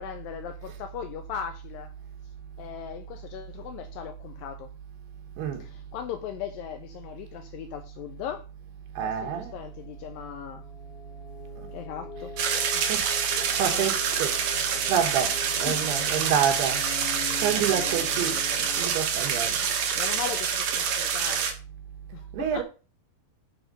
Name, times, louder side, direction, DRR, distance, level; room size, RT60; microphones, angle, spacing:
voice 1, 0.0-1.9 2.6-4.7 5.6-8.5 9.0-10.7 11.7-12.3 12.7-12.8 13.6-13.9 15.7-15.9 17.6-17.9 18.2-18.3 19.6-21.5 22.1-22.6, left 9 dB, 80° left, 2.1 m, -38 dB
voice 2, 9.0-9.5 12.9-13.0 13.3-16.8 17.4-18.4 18.8-19.6 20.2-20.3 22.3-22.6, right 8 dB, 90° right, 3.2 m, -28 dB
sound 1, 9.5-18.9, left 7 dB, 65° left, 2.4 m, -43 dB
sound 2, 12.4-21.5, right 7 dB, 70° right, 1.8 m, -27 dB
8.8 x 3.5 x 5.1 m
omnidirectional pair, 4.5 m